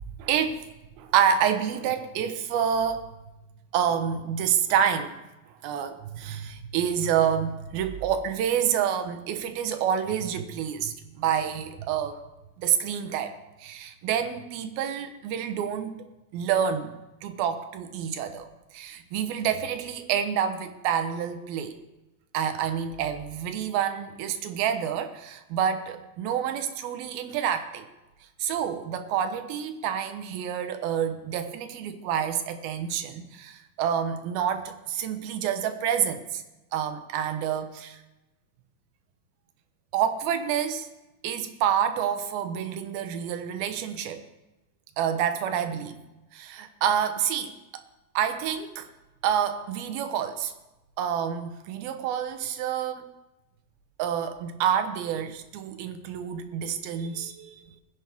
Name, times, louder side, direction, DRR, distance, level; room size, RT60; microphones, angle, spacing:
voice 1, 0.2-0.6 1.0-3.1 3.7-5.2 5.6-12.2 12.6-16.1 16.3-16.9 17.2-21.8 22.3-27.8 28.4-36.4 36.7-38.0 39.9-40.9 41.2-44.2 45.0-46.0 46.3-47.8 48.1-48.9 49.2-50.5 51.0-53.1 54.0-57.6, right 8 dB, 80° right, 8 dB, 2.9 m, -28 dB
20.5 x 10.5 x 3.6 m, 1.0 s
omnidirectional pair, 4.3 m